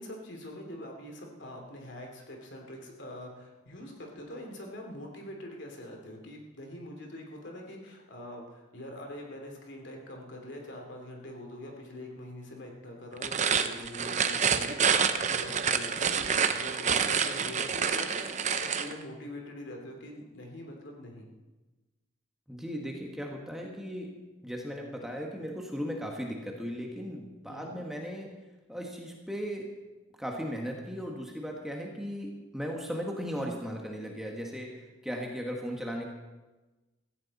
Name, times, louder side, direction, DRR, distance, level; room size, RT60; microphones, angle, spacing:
voice 1, 0.0-21.3 27.5-27.8, left 1 dB, 60° left, 1 dB, 2.9 m, -44 dB
sound 1, 13.1-18.9, right 6 dB, 35° right, 0.7 m, -28 dB
voice 2, 22.5-24.1 24.4-28.3 28.7-29.7 30.2-36.1, equal, ahead, 0 dB, 1.5 m, -37 dB
16.5 x 15.0 x 4.2 m, 1.2 s
head